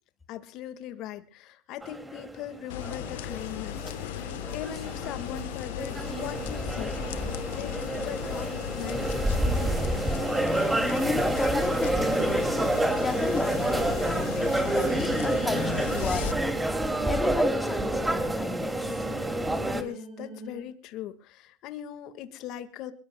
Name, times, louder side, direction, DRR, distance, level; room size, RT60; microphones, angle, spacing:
voice 1, 0.3-7.0 7.5-9.8 19.7-22.9, left 11 dB, 50° left, 10 dB, 1.7 m, -40 dB
sound 1, 1.8-19.8, right 1 dB, 10° right, 2.4 m, -28 dB
sound 2, 2.7-16.3, left 13 dB, 70° left, 1.0 m, -37 dB
voice 2, 10.9-16.6 17.0-19.0, left 3 dB, 15° left, 4 dB, 3.1 m, -34 dB
sound 3, 14.1-20.6, right 1 dB, 35° right, 6.3 m, -42 dB
26.0 x 22.0 x 2.2 m, 0.35 s
hypercardioid pair, 95°, 0 cm